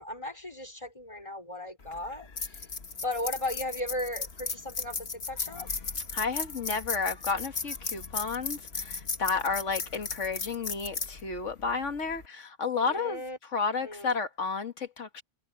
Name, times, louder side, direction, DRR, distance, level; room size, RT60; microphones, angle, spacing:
voice 1, 0.0-2.6 2.9-5.7 12.8-13.4 13.8-14.2, left 1 dB, 25° left, 5.3 m, -36 dB
sound 1, 1.8-12.3, left 4 dB, 55° left, 1.8 m, -36 dB
voice 2, 6.1-15.2, left 5 dB, 80° left, 2.0 m, -32 dB
omnidirectional pair, 1.2 m